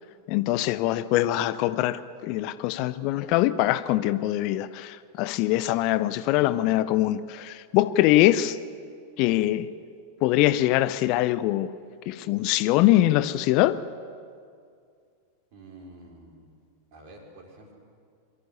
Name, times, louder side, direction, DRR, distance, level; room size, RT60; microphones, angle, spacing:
voice 1, 0.3-8.6 9.2-9.7 10.2-11.7 12.1-13.8, left 15 dB, 45° left, 0.6 m, -23 dB
voice 2, 15.5-16.6 16.9-17.8, right 1 dB, 45° right, 5.0 m, -48 dB
23.5 x 14.0 x 9.6 m
figure-of-eight pair, 90°, 0 cm